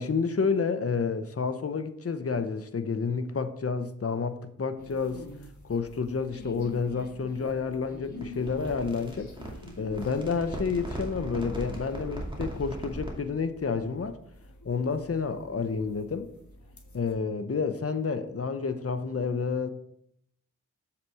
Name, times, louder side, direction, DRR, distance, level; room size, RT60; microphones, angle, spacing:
voice 1, 0.0-5.2 5.6-9.3 9.8-14.2 14.6-16.3 16.9-19.7, left 5 dB, 45° left, 0.8 m, -30 dB
sound 1, 4.8-17.1, left 1 dB, 65° left, 1.6 m, -48 dB
sound 2, 8.2-13.3, right 1 dB, 15° right, 2.4 m, -38 dB
7.5 x 5.9 x 4.8 m
cardioid pair, 50°, 32 cm